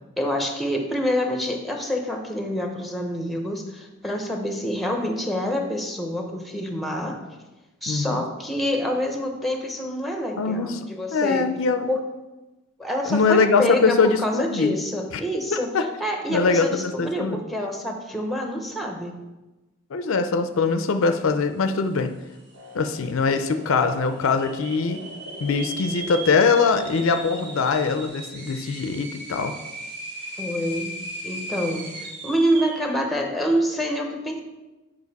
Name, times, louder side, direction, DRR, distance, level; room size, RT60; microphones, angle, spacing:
voice 1, 0.2-7.2 7.8-11.4 11.9-12.0 12.8-15.7 16.0-19.2 30.4-31.0 31.2-34.4, equal, ahead, 3 dB, 0.8 m, -27 dB
voice 2, 7.9-8.2 10.4-10.8 11.1-11.9 13.0-14.7 15.5-15.9 16.3-17.4 19.9-22.1 22.7-25.0 25.4-29.5, left 4 dB, 70° left, 8 dB, 0.5 m, -22 dB
sound 1, 22.0-22.1 22.3-22.9 23.4-23.5 24.2-32.9, right 1 dB, 55° right, 1.8 m, -37 dB
sound 2, 22.5-28.1, left 1 dB, 85° right, 1.9 m, -44 dB
7.2 x 5.0 x 4.0 m, 1.1 s
head